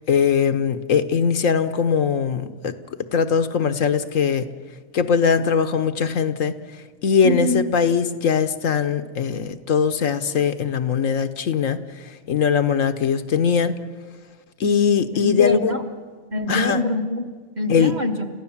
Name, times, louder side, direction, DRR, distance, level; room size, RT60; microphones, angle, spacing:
voice 1, 0.1-2.7 3.1-4.5 4.9-6.5 7.0-11.8 12.3-13.8 14.6-15.7 16.5-16.8 17.7-17.9, left 6 dB, 70° left, 10 dB, 1.3 m, -20 dB
voice 2, 7.2-7.7 15.2-15.8 16.3-18.3, left 1 dB, 35° right, 4 dB, 1.4 m, -25 dB
29.5 x 15.0 x 7.3 m, 1.5 s
omnidirectional pair, 1.4 m